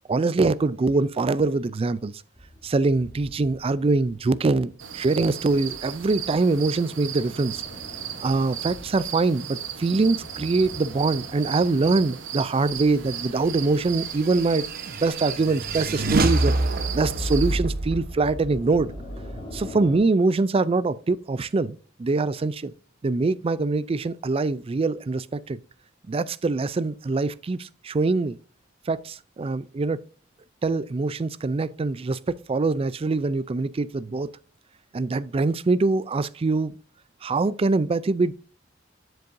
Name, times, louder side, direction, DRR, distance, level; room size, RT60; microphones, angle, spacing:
voice 1, 0.1-2.1 2.6-7.6 8.2-14.7 15.0-16.5 16.9-18.9 19.5-22.7 23.0-25.6 26.1-28.4 28.9-30.0 30.6-32.2 32.5-34.3 34.9-36.8 37.2-38.3, right 3 dB, 30° right, 0.4 m, -23 dB
sound 1, 2.4-20.0, left 1 dB, 25° left, 2.8 m, -46 dB
sound 2, 4.8-17.6, right 9 dB, 75° right, 1.0 m, -36 dB
sound 3, 14.0-19.6, right 2 dB, 50° right, 0.9 m, -27 dB
7.7 x 7.0 x 2.6 m
head